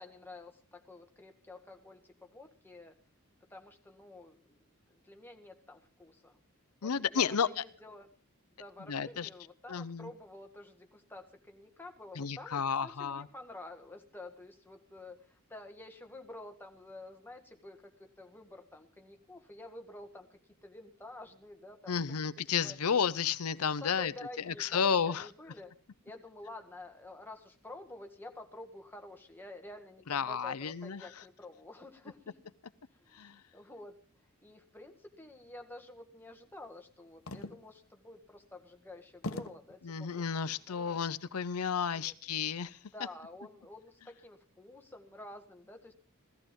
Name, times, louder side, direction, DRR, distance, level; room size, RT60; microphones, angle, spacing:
voice 1, 0.0-3.0 3.5-6.4 6.8-8.1 8.5-22.0 22.4-22.8 23.8-25.7 26.0-32.5 32.9-41.0 41.9-42.1 42.9-45.9, left 2 dB, 10° left, 4 dB, 1.7 m, -50 dB
voice 2, 6.8-7.6 8.9-9.3 9.7-10.1 12.2-13.3 21.9-24.1 24.5-25.3 30.1-31.1 33.1-33.3 39.9-42.8, left 7 dB, 90° left, 16 dB, 0.7 m, -32 dB
sound 1, 37.3-37.9 38.4-38.5 39.2-39.8 40.5-41.0, left 2 dB, 65° left, 1.1 m, -41 dB
16.0 x 14.5 x 5.3 m, 0.41 s
head